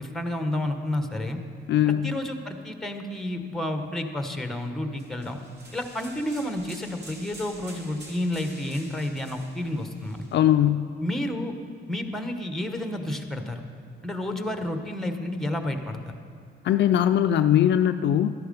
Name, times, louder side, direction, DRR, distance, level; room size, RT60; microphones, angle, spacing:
voice 1, 0.0-1.4 1.9-5.4 5.7-10.2 11.0-11.5 11.9-13.6 14.0-16.1, left 1 dB, ahead, 6 dB, 1.1 m, -30 dB
voice 2, 1.7-2.1 10.3-10.9 16.6-18.3, left 11 dB, 60° left, 9 dB, 0.4 m, -20 dB
sound 1, 5.0-10.4, right 1 dB, 55° right, 2.7 m, -47 dB
12.5 x 10.5 x 5.3 m, 2.2 s
cardioid pair, 90°, 20 cm